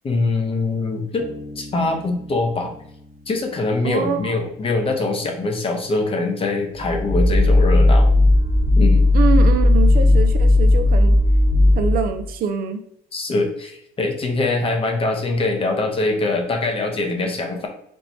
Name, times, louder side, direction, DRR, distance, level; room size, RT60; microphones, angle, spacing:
voice 1, 0.0-1.2 1.6-2.7 3.3-8.1 8.8-9.0 13.1-17.7, left 3 dB, 35° left, 3 dB, 0.8 m, -23 dB
Bass guitar, 1.2-4.7, left 1 dB, ahead, 1.0 m, -41 dB
voice 2, 3.8-4.4 9.1-11.2 11.8-12.8, right 6 dB, 60° right, 7 dB, 0.5 m, -24 dB
sound 1, 6.8-12.2, left 2 dB, 35° right, 1.2 m, -15 dB
4.4 x 3.1 x 2.6 m, 0.71 s
cardioid pair, 110°, 17 cm